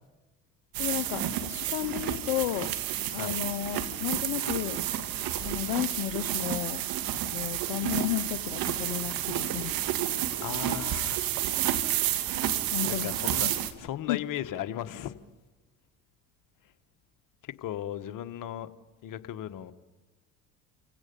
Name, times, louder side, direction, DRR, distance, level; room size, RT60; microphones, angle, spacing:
sound 1, 0.7-13.7, right 11 dB, 65° right, 1.8 m, -30 dB
voice 1, 0.8-2.7 3.1-4.8 5.4-6.8 7.3-9.7 12.7-13.1 14.1-14.2, left 16 dB, 75° left, 0.8 m, -33 dB
voice 2, 10.4-11.2 12.8-15.2 17.4-18.7 19.0-19.7, left 11 dB, 55° left, 1.3 m, -36 dB
29.0 x 16.5 x 5.5 m
hypercardioid pair, 65°, 37 cm